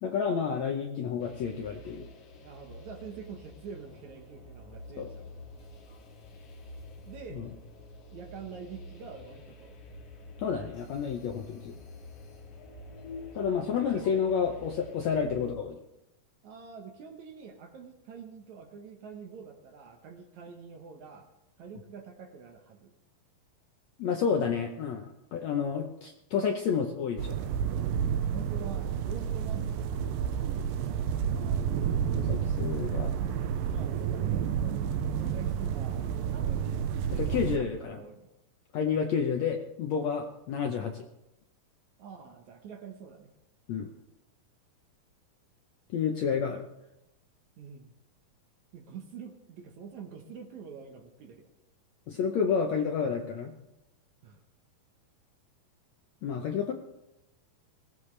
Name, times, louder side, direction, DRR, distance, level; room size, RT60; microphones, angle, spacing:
voice 1, 0.0-2.1 5.0-5.1 7.3-7.5 10.4-11.7 13.3-15.8 24.0-27.4 32.1-33.1 37.1-38.0 38.7-41.1 43.7-43.9 45.9-46.6 52.1-53.5 56.2-56.7, left 6 dB, 70° left, 3 dB, 1.7 m, -30 dB
sound 1, 1.2-15.5, left 2 dB, 50° left, 2.4 m, -48 dB
voice 2, 2.4-5.3 7.0-7.4 8.1-9.8 13.6-14.2 14.8-15.0 16.4-21.3 21.6-22.9 28.3-30.1 30.8-31.7 33.7-34.8 35.2-38.3 40.0-40.2 42.0-43.3 47.6-47.9 48.7-51.5 54.2-54.4, right 6 dB, 65° right, 4 dB, 2.2 m, -46 dB
sound 2, 27.2-37.6, right 8 dB, 80° right, 2.5 m, -30 dB
20.5 x 16.5 x 3.3 m, 0.89 s
omnidirectional pair, 4.2 m